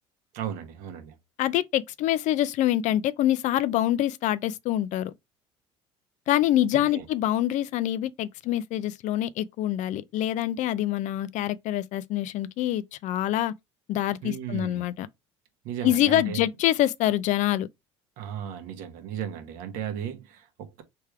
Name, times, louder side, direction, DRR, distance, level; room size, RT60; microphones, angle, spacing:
voice 1, 0.3-1.1 6.9-7.0 14.2-14.9 15.6-16.4 18.2-20.8, right 9 dB, 70° right, 1.2 m, -35 dB
voice 2, 1.4-5.1 6.3-13.5 13.9-15.1 15.8-17.7, left 13 dB, 60° left, 0.5 m, -25 dB
3.5 x 3.3 x 4.6 m
hypercardioid pair, 75°, 14 cm